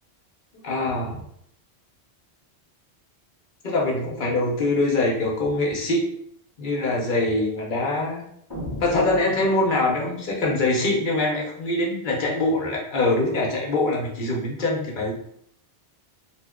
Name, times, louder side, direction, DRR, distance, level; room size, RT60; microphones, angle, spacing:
voice 1, 0.6-1.2 3.6-6.1 6.6-8.2 8.8-15.1, left 2 dB, 50° left, -2 dB, 0.9 m, -23 dB
sound 1, 8.5-10.1, left 1 dB, 25° left, 0.6 m, -36 dB
2.9 x 2.2 x 3.5 m, 0.70 s
omnidirectional pair, 1.2 m